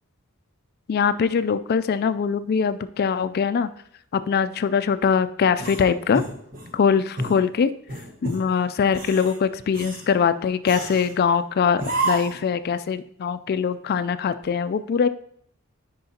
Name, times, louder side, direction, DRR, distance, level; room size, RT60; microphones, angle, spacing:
voice 1, 0.9-3.7 4.1-6.2 6.7-7.7 8.2-15.1, left 6 dB, 45° left, 13 dB, 0.3 m, -22 dB
sound 1, 5.6-6.7 7.2-7.4 7.9-8.4 8.9-9.4 9.7-10.1 10.6-11.1 11.8-12.4, right 2 dB, 45° right, 1.3 m, -29 dB
9.4 x 5.3 x 2.8 m, 0.67 s
head